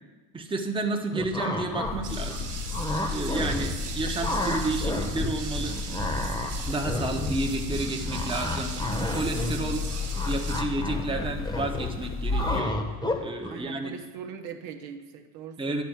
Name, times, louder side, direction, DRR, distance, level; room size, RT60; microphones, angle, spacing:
voice 1, 0.3-2.5 3.1-5.8 6.7-9.9 10.2-12.8 13.2-13.9 15.6-15.8, right 2 dB, 10° right, 2 dB, 1.0 m, -31 dB
sound 1, 1.1-1.9 2.3-3.9 4.2-5.3 5.6-13.5, left 1 dB, 10° left, 1.1 m, -31 dB
sound 2, 1.8-12.6, left 4 dB, 30° left, 0.9 m, -33 dB
sound 3, 2.0-10.6, right 6 dB, 40° right, 1.4 m, -40 dB
voice 2, 13.5-15.8, right 7 dB, 70° right, 5 dB, 1.0 m, -41 dB
9.5 x 4.3 x 7.3 m, 1.3 s
supercardioid pair, 85°, 46 cm